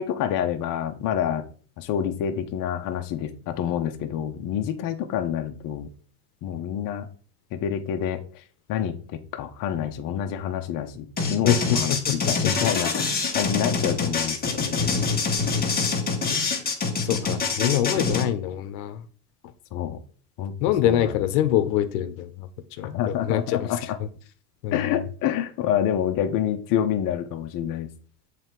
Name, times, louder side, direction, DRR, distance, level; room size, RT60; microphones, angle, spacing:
voice 1, 0.0-1.4 1.8-5.9 6.4-7.1 7.5-8.4 8.7-15.0 19.7-20.0 20.4-20.5 20.8-21.2 22.8-24.0 24.7-27.9, left 9 dB, 45° left, 5 dB, 0.8 m, -28 dB
sound 1, 11.2-18.3, left 4 dB, 20° left, 1.5 m, -25 dB
voice 2, 11.4-12.7 17.0-19.0 20.6-22.5 22.8-23.7 24.6-24.9, left 11 dB, 75° left, 10 dB, 0.9 m, -25 dB
7.2 x 3.4 x 4.5 m, 0.43 s
supercardioid pair, 120°, 47 cm